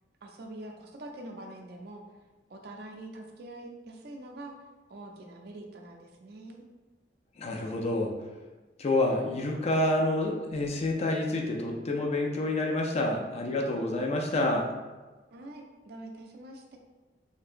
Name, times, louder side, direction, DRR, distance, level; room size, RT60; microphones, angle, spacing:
voice 1, 0.2-2.0 2.5-4.5 4.9-6.6 15.3-16.8, right 1 dB, 60° right, 2 dB, 0.5 m, -44 dB
voice 2, 7.4-8.1 8.8-14.7, left 2 dB, 35° left, 0 dB, 0.4 m, -28 dB
3.2 x 2.8 x 2.5 m, 1.2 s
head